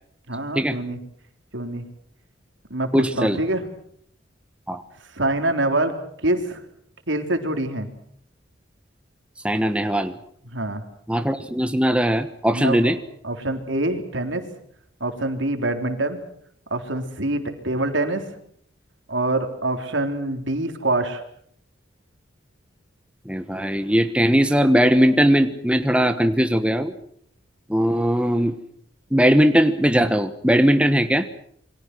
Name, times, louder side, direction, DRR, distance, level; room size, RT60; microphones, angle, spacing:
voice 1, 0.3-1.0 1.5-1.9 2.7-3.7 5.1-5.9 6.2-6.6 7.1-7.9 10.5-10.8 12.5-12.9 13.2-14.4 15.0-16.2 16.7-18.2 19.1-21.2, right 2 dB, 80° right, 6 dB, 3.8 m, -25 dB
voice 2, 2.9-3.4 4.7-4.8 9.4-10.1 11.1-13.0 23.3-26.9 27.7-28.5 29.1-31.3, equal, 5° right, 9 dB, 1.1 m, -19 dB
28.0 x 24.0 x 6.2 m, 0.65 s
head